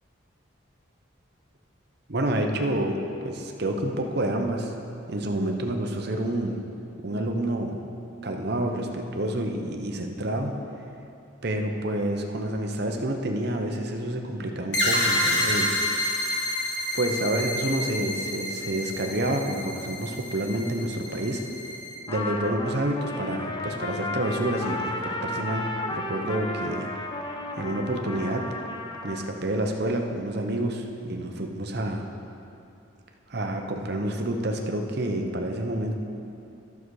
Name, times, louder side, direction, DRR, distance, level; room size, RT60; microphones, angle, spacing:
voice 1, 2.1-3.0 3.2-4.7 5.1-6.6 7.0-7.8 8.2-10.5 11.4-15.8 16.9-21.4 22.1-26.9 27.6-28.4 29.0-32.0 33.3-36.0, right 1 dB, 50° right, 3 dB, 0.8 m, -28 dB
sound 1, 14.7-22.0, left 1 dB, 60° left, 1.8 m, -29 dB
Trumpet, 22.1-29.3, left 2 dB, 20° left, 0.5 m, -33 dB
11.5 x 6.7 x 4.7 m, 2.7 s
head